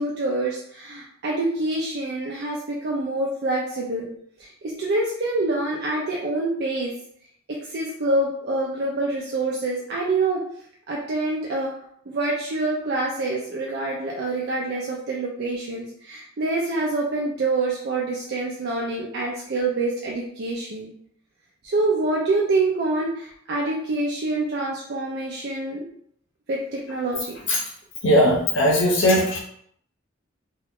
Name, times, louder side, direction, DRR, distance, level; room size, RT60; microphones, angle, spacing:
voice 1, 0.0-4.1 4.4-6.9 7.5-10.4 10.9-11.7 12.1-20.9 21.6-25.8 26.5-27.4, right 2 dB, 55° right, -3 dB, 0.5 m, -26 dB
voice 2, 28.0-29.4, equal, 65° left, -2 dB, 0.7 m, -18 dB
2.9 x 2.2 x 3.5 m, 0.67 s
head